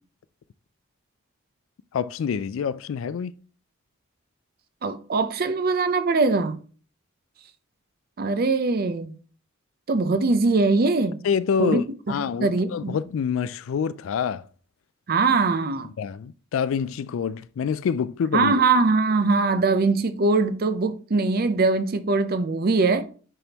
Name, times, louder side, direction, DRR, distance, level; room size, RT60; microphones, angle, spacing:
voice 1, 1.9-3.3 11.2-14.4 15.8-18.5, left 7 dB, 70° left, 0.3 m, -26 dB
voice 2, 4.8-6.6 8.2-9.1 9.9-11.2 11.6-11.8 12.4-12.9 15.1-15.9 18.3-23.0, right 3 dB, 45° right, 0.5 m, -22 dB
10.0 x 3.4 x 2.9 m
head